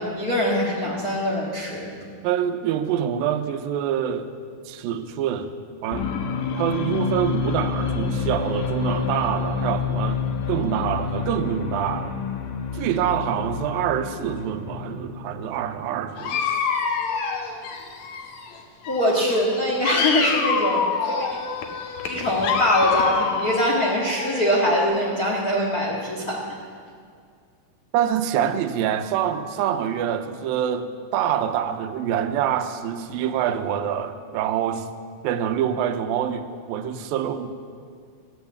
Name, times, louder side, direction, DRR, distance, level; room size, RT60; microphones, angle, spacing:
voice 1, 0.0-2.0 18.9-21.3 22.0-26.4, equal, 45° left, -3 dB, 1.2 m, -23 dB
voice 2, 2.2-4.3 4.7-5.5 5.8-6.1 6.6-12.2 12.7-16.4 27.9-34.9 35.2-37.5, right 9 dB, 80° right, 9 dB, 2.4 m, -25 dB
sound 1, 5.9-15.5, left 6 dB, 80° left, 2.9 m, -28 dB
Dog, 16.2-18.6 18.8-24.8, left 6 dB, 65° left, 1.8 m, -26 dB
14.0 x 10.5 x 8.4 m, 2.2 s
omnidirectional pair, 4.5 m